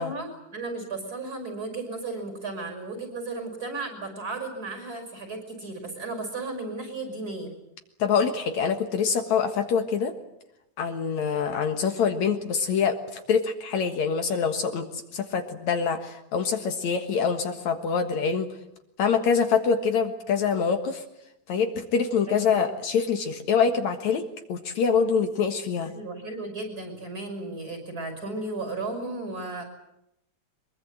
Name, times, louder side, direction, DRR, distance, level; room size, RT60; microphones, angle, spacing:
voice 1, 0.0-7.5 22.3-22.7 25.9-29.6, right 3 dB, 30° right, 6 dB, 6.1 m, -34 dB
voice 2, 8.0-10.1 10.8-14.9 15.1-18.5 19.0-21.0 21.5-24.2 24.5-25.9, left 6 dB, 65° left, 6 dB, 2.8 m, -25 dB
24.0 x 22.5 x 9.0 m, 0.82 s
omnidirectional pair, 3.6 m